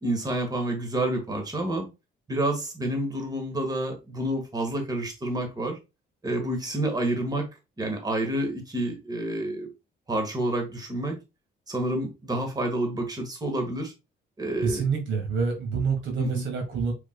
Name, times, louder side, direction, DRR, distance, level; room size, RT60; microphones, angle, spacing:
voice 1, 0.0-1.9 2.3-5.8 6.2-7.5 7.8-9.7 10.1-11.2 11.7-13.9 14.4-14.8 16.2-16.5, right 1 dB, 20° right, 1.6 m, -29 dB
voice 2, 14.6-16.9, right 5 dB, 75° right, 1.9 m, -27 dB
5.0 x 4.5 x 2.2 m
cardioid pair, 90°, 20 cm